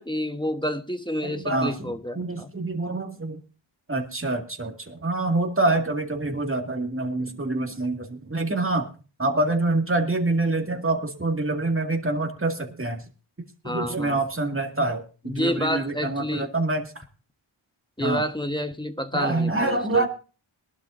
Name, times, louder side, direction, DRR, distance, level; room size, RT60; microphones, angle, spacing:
voice 1, 0.0-2.5 13.6-14.2 15.2-16.5 18.0-20.1, equal, 10° left, 7 dB, 1.2 m, -29 dB
voice 2, 1.2-3.4 3.9-8.9 9.2-13.0 13.6-17.0 18.0-18.2 19.1-20.1, right 2 dB, 25° right, 3 dB, 2.1 m, -26 dB
21.5 x 12.0 x 2.6 m, 0.36 s
wide cardioid pair, 40°, 49 cm